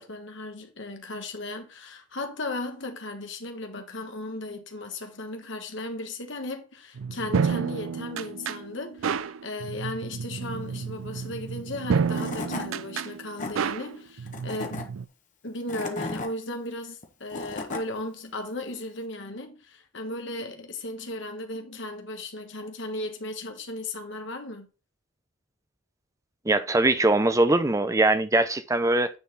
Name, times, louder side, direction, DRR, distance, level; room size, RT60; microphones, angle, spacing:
voice 1, 0.0-14.9 15.4-24.7, left 2 dB, 60° left, 1.5 m, -36 dB
sound 1, 7.0-15.1, right 6 dB, 75° right, 0.4 m, -30 dB
Tools / Wood, 11.8-11.9 12.1-12.7 13.2-13.5 14.3-14.8 15.5-16.3 17.0-17.8, left 3 dB, 40° left, 1.2 m, -34 dB
voice 2, 26.5-29.1, right 2 dB, 15° right, 0.6 m, -22 dB
9.5 x 4.0 x 4.2 m
head